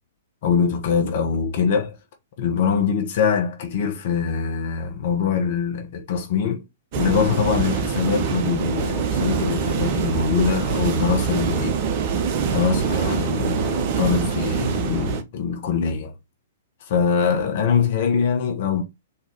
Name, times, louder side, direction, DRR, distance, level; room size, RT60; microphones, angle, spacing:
voice 1, 0.4-2.0 2.4-6.6 7.0-11.8 12.4-16.1 16.9-18.8, left 6 dB, 45° left, 1.1 m, -23 dB
sound 1, 6.9-15.2, right 6 dB, 40° right, 0.7 m, -24 dB
3.8 x 2.9 x 4.5 m
figure-of-eight pair, 110°, 0 cm